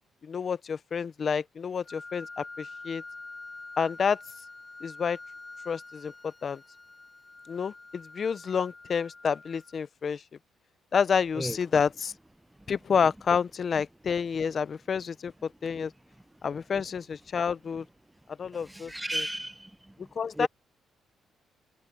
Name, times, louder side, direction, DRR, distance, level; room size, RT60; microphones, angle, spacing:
voice 1, 0.2-3.0 3.8-4.2 4.8-5.2 5.7-6.6 7.5-10.2 10.9-12.1 12.7-15.9 16.4-17.8 18.4-19.3 20.2-20.5, left 6 dB, 45° left, 0.6 m, -29 dB
Wind instrument woodwind instrument, 1.8-9.8, left 3 dB, 20° left, 7.8 m, -46 dB
voice 2, 18.7-19.7 20.0-20.1 20.4-20.5, right 1 dB, 10° right, 0.5 m, -33 dB
cardioid pair, 90°, 0 cm